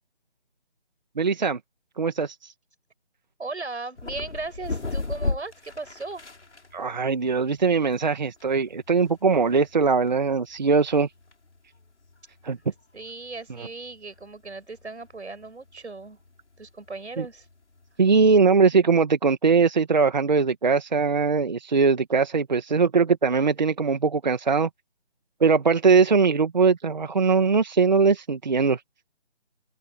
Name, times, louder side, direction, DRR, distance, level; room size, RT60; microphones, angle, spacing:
voice 1, 1.2-1.6 2.0-2.5 6.7-11.1 12.4-12.6 17.2-17.3 18.0-24.7 25.4-28.8, right 5 dB, 40° right, 1.9 m, -21 dB
voice 2, 3.4-6.2 12.9-16.2 16.6-17.5, right 3 dB, 75° right, 7.4 m, -37 dB
sound 1, 4.0-18.4, left 3 dB, 80° left, 6.3 m, -38 dB
open air
figure-of-eight pair, 170°, 34 cm